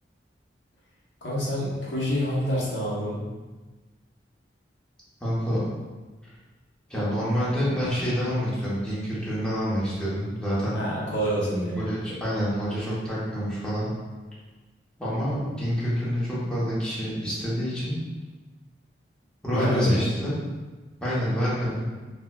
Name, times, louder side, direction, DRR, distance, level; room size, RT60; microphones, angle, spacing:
voice 1, 1.2-3.3 10.7-11.8 19.5-20.0, equal, 85° left, -6 dB, 0.8 m, -27 dB
voice 2, 5.2-5.6 6.9-10.8 11.7-13.9 15.0-18.0 19.4-20.3 21.0-21.8, equal, 5° left, -9 dB, 0.7 m, -27 dB
4.3 x 2.2 x 2.2 m, 1.3 s
head